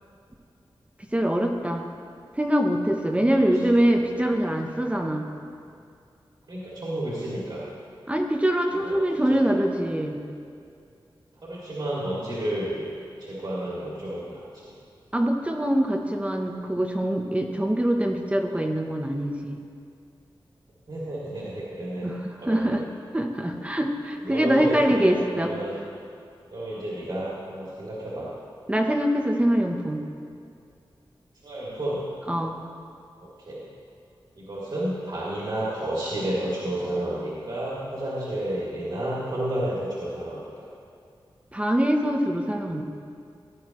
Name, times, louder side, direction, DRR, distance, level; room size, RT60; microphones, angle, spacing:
voice 1, 1.1-1.9 2.4-5.3 8.1-10.2 15.1-19.6 22.0-22.8 23.1-25.5 28.7-30.0 32.3-32.6 41.5-42.8, right 1 dB, 15° right, 2 dB, 0.9 m, -24 dB
voice 2, 3.3-3.7 6.5-7.6 8.7-9.5 11.4-12.9 13.2-14.7 20.9-22.1 22.4-22.8 23.5-23.6 24.2-25.7 26.5-28.3 31.4-32.0 33.4-33.6 34.3-40.7, right 1 dB, 60° right, -8 dB, 2.6 m, -31 dB
17.0 x 11.5 x 3.1 m, 2.4 s
wide cardioid pair, 120°, 9 cm